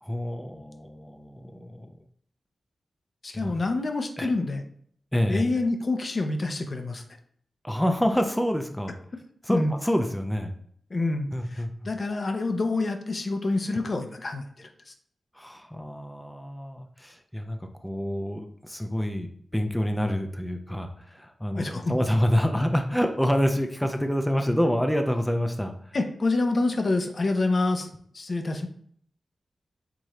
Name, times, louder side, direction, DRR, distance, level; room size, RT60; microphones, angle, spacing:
voice 1, 0.0-1.9 3.3-3.5 4.2-4.3 5.1-5.4 7.6-8.9 9.4-10.5 11.3-11.7 15.4-25.7, equal, 5° left, 4 dB, 0.5 m, -27 dB
voice 2, 3.2-4.6 5.3-7.0 9.5-9.7 10.9-14.9 21.5-22.1 25.9-28.7, left 2 dB, 50° left, 5 dB, 0.6 m, -27 dB
4.7 x 2.6 x 4.2 m, 0.62 s
cardioid pair, 65°, 0 cm